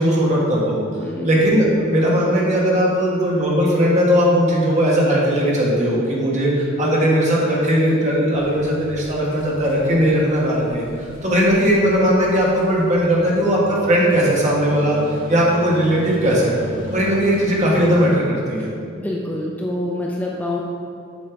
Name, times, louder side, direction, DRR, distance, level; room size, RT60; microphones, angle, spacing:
voice 1, 0.0-0.8 1.2-16.6 16.9-18.7, equal, 35° right, -4 dB, 1.5 m, -18 dB
voice 2, 1.0-1.3 18.9-20.6, left 1 dB, 10° left, -3 dB, 0.5 m, -26 dB
sound 1, 8.3-18.1, equal, 45° left, 1.7 m, -37 dB
7.4 x 6.5 x 3.5 m, 2.6 s
head